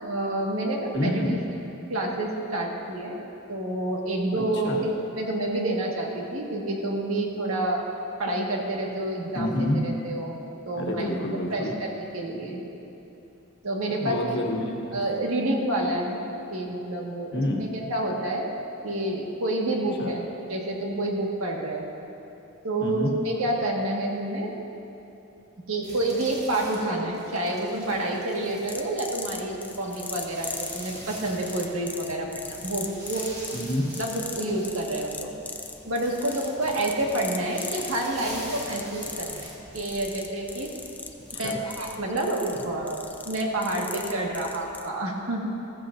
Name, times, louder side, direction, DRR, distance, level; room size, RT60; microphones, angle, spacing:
voice 1, 0.0-1.4 1.9-3.2 3.5-7.8 8.2-10.4 10.6-11.1 11.5-12.6 13.6-14.4 14.9-16.2 16.5-18.5 18.8-20.2 20.5-21.8 22.6-24.5 25.7-33.3 34.0-35.3 35.8-40.7 41.4-45.4, right 1 dB, 80° right, -1 dB, 1.7 m, -28 dB
voice 2, 0.9-1.4 4.3-4.8 9.3-9.8 10.7-11.7 13.9-15.0 17.3-17.7 20.0-20.1 22.8-23.1 33.5-33.9 41.3-41.6, left 1 dB, 55° left, 0 dB, 1.4 m, -28 dB
sound 1, 25.8-31.9 32.3-42.0, right 1 dB, 30° right, 2.0 m, -45 dB
sound 2, 28.7-44.9, left 3 dB, 10° left, 0.4 m, -40 dB
15.0 x 14.0 x 2.6 m, 2.9 s
head